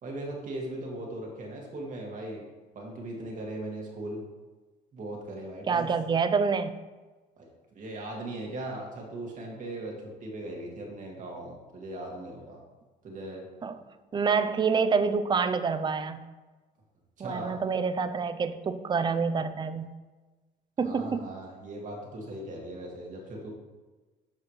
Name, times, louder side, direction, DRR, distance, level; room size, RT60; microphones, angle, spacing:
voice 1, 0.0-2.4 2.7-4.2 4.9-5.9 7.4-7.5 7.7-12.6 13.0-13.5 17.2-17.6 20.8-23.5, right 1 dB, 50° right, -1 dB, 2.2 m, -38 dB
voice 2, 5.7-6.8 13.6-13.7 14.1-16.2 17.2-19.9 20.8-21.3, right 5 dB, 25° right, 11 dB, 0.5 m, -27 dB
11.5 x 4.8 x 3.3 m, 1.2 s
cardioid pair, 110°, 17 cm